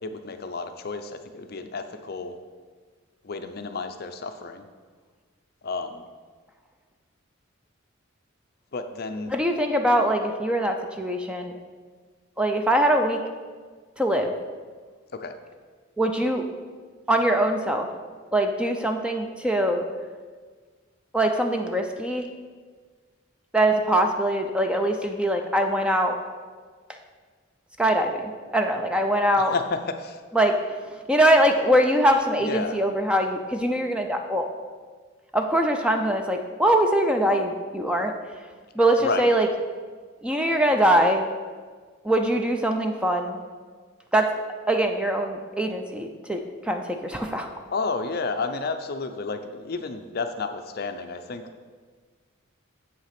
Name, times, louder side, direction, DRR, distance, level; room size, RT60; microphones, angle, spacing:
voice 1, 0.0-2.4 3.2-4.6 5.6-6.0 8.7-9.3 15.1-15.3 29.4-30.2 32.4-32.8 39.0-39.3 47.7-51.4, left 4 dB, 45° left, 8 dB, 0.5 m, -31 dB
voice 2, 9.3-11.5 12.4-13.2 14.0-14.3 16.0-16.4 17.1-17.9 18.3-19.8 21.1-22.3 23.5-26.2 27.8-29.5 30.3-30.5 31.1-34.5 35.3-38.1 38.8-39.5 40.2-41.2 42.0-43.4 44.1-44.3 44.7-47.5, right 1 dB, 5° right, 4 dB, 0.5 m, -22 dB
7.6 x 5.8 x 5.9 m, 1.5 s
head